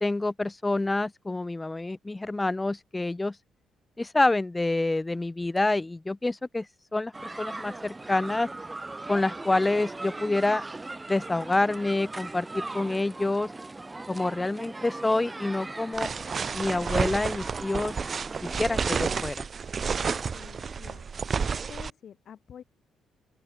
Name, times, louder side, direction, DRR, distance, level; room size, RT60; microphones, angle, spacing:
voice 1, 0.0-3.4 4.0-6.7 6.9-7.1 7.4-8.5 9.1-10.6 11.1-13.5 14.1-16.1 16.5-18.0 18.4-19.5, left 2 dB, 15° left, 1.1 m, -27 dB
sound 1, 7.1-19.3, right 2 dB, 20° right, 2.7 m, -39 dB
sound 2, 15.9-21.9, right 5 dB, 40° right, 0.7 m, -30 dB
voice 2, 20.0-21.0 21.4-22.6, left 8 dB, 60° left, 3.9 m, -48 dB
open air
cardioid pair, 90°, 0 cm